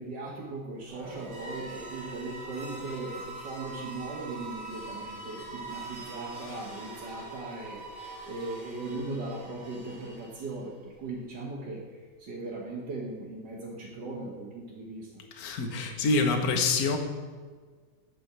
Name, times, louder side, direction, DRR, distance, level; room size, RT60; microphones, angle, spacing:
voice 1, 0.0-15.1, right 2 dB, 75° right, -5 dB, 2.3 m, -38 dB
sound 1, 0.8-10.7, right 3 dB, 40° right, 2.6 m, -43 dB
voice 2, 15.3-17.0, left 3 dB, 60° left, 4 dB, 1.6 m, -26 dB
8.9 x 6.3 x 8.0 m, 1.5 s
omnidirectional pair, 1.9 m